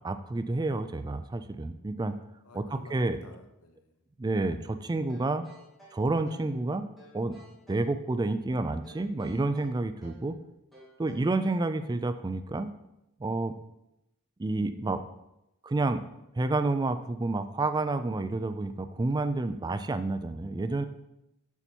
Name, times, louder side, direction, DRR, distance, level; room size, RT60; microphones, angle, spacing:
voice 1, 0.0-2.2 2.5-3.2 4.2-5.4 5.9-6.9 7.1-7.4 7.7-10.4 11.0-12.7 13.2-13.5 14.4-15.0 15.6-16.0 16.4-20.8, right 2 dB, 20° right, 10 dB, 0.3 m, -29 dB
voice 2, 2.4-3.9, left 2 dB, 85° left, 6 dB, 1.0 m, -51 dB
sound 1, 5.1-6.5 7.0-7.9 8.8-10.3 10.7-11.7, right 1 dB, ahead, 2.8 m, -54 dB
7.1 x 6.8 x 4.4 m, 0.86 s
head